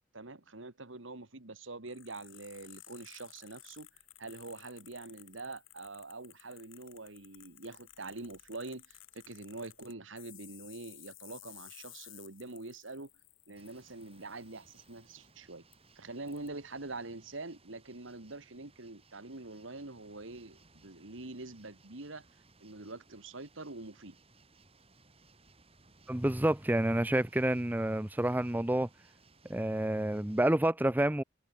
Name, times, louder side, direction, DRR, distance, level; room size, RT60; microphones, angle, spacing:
voice 1, 0.1-3.9 4.2-13.1 13.5-15.6 16.0-22.3 22.6-24.2, right 2 dB, 70° right, 2.1 m, -45 dB
sound 1, 1.9-15.2 15.7-15.8 16.3-16.5, left 16 dB, 75° left, 7.2 m, -56 dB
sound 2, 13.6-30.5, right 3 dB, 30° right, 6.6 m, -63 dB
voice 2, 26.1-28.9 29.5-31.2, right 1 dB, 10° right, 0.6 m, -29 dB
head